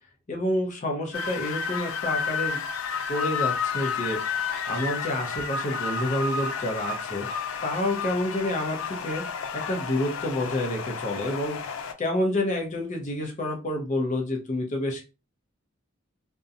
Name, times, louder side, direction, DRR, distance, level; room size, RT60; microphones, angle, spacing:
voice 1, 0.3-2.6 3.1-4.2 4.7-7.3 7.6-9.3 9.5-11.6 12.0-15.1, left 1 dB, 40° left, 2 dB, 0.6 m, -28 dB
sound 1, 1.1-11.9, left 6 dB, 85° left, 0.4 m, -31 dB
2.6 x 2.1 x 2.4 m, 0.29 s
head